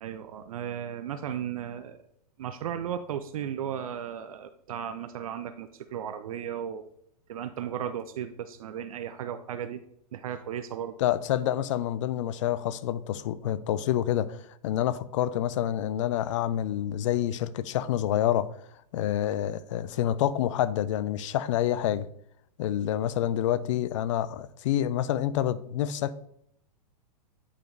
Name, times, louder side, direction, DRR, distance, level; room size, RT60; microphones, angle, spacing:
voice 1, 0.0-2.0 2.4-6.9 7.3-9.8 10.1-11.0, right 9 dB, 55° right, 0.5 m, -35 dB
voice 2, 11.0-14.4 14.6-18.5 18.9-22.1 22.6-26.3, left 11 dB, 45° left, 0.4 m, -27 dB
9.0 x 4.1 x 3.2 m
figure-of-eight pair, 105°, 21 cm